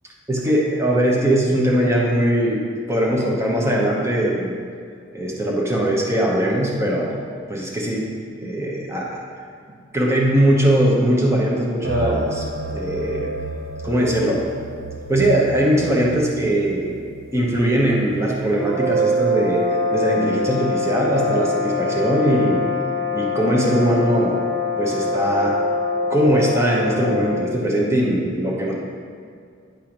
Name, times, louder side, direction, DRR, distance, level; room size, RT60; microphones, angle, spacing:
voice 1, 0.3-4.6 5.1-7.2 7.5-8.1 8.4-9.2 9.9-12.5 12.7-13.3 13.8-14.5 15.1-17.0 17.3-19.6 19.9-22.7 23.1-24.4 24.8-25.6 26.1-28.7, right 1 dB, 15° right, -3 dB, 1.0 m, -20 dB
sound 1, 11.8-18.4, right 3 dB, 85° right, 0.5 m, -32 dB
sound 2, 18.6-27.5, left 2 dB, 55° right, 1.0 m, -23 dB
10.5 x 3.5 x 5.9 m, 2.2 s
head